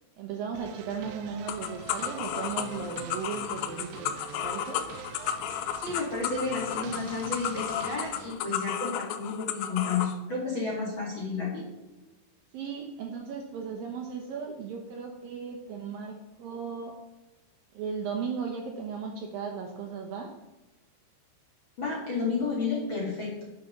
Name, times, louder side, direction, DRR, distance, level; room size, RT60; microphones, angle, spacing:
voice 1, 0.2-4.8 12.5-17.0 17.7-20.3, right 6 dB, 70° right, 2 dB, 2.4 m, -36 dB
sound 1, 0.5-8.3, right 8 dB, 85° right, 2.9 m, -44 dB
sound 2, 1.5-10.1, left 10 dB, 85° left, 3.0 m, -33 dB
voice 2, 5.8-11.7 21.8-23.4, left 4 dB, 40° left, -3 dB, 2.2 m, -31 dB
10.5 x 7.1 x 6.7 m, 1.1 s
omnidirectional pair, 5.0 m